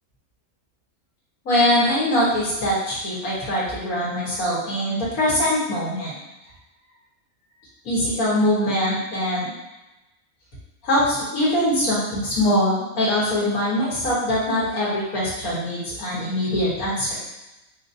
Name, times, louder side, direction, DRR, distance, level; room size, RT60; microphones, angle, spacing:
voice 1, 1.5-6.2 7.9-9.5 10.8-17.2, left 1 dB, 80° left, -7 dB, 1.9 m, -22 dB
5.1 x 3.0 x 2.7 m, 0.98 s
omnidirectional pair, 1.5 m